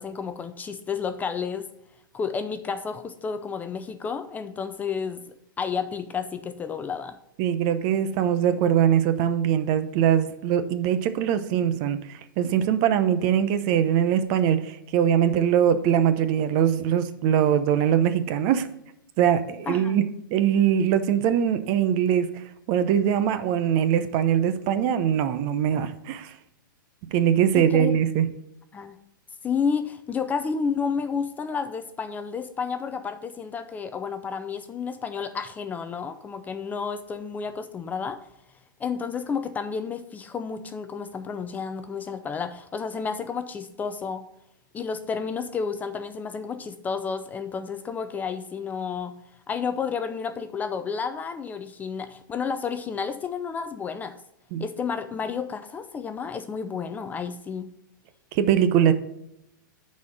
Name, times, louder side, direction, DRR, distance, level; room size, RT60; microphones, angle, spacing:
voice 1, 0.0-1.7 2.1-5.2 5.6-7.2 19.7-20.0 27.5-27.9 28.7-29.0 29.4-38.2 38.8-44.3 44.7-49.2 49.5-54.2 54.6-57.7, left 6 dB, 15° left, 9 dB, 0.4 m, -31 dB
voice 2, 7.4-18.7 19.2-20.0 20.3-26.3 27.1-28.3 54.5-54.6 58.3-58.9, right 9 dB, 40° right, 11 dB, 0.7 m, -22 dB
9.5 x 4.2 x 4.8 m, 0.81 s
hypercardioid pair, 135°, 11 cm